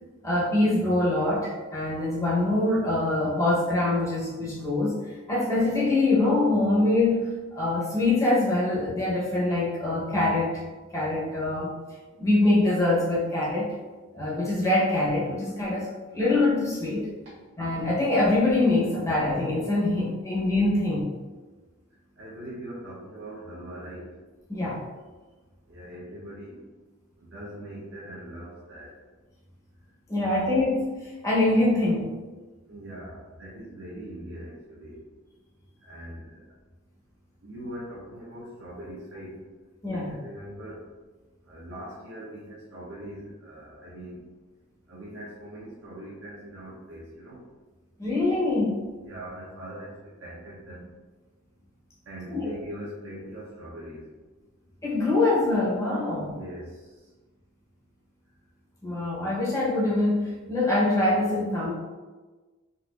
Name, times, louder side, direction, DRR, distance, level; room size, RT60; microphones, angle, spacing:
voice 1, 0.2-10.6 10.9-11.7 12.2-13.7 14.1-17.1 17.6-21.1 24.5-24.8 30.1-32.1 39.8-40.1 48.0-48.8 52.3-52.4 54.8-56.3 58.8-61.7, left 2 dB, 15° left, -6 dB, 0.6 m, -24 dB
voice 2, 22.2-24.1 25.7-26.7 27.2-28.9 30.2-30.4 32.7-35.0 35.8-36.4 37.4-39.4 39.9-40.8 41.5-44.2 44.9-47.4 49.0-50.9 52.1-54.1 56.1-57.0, right 1 dB, 60° right, -7 dB, 0.7 m, -41 dB
4.1 x 2.5 x 2.3 m, 1.3 s
head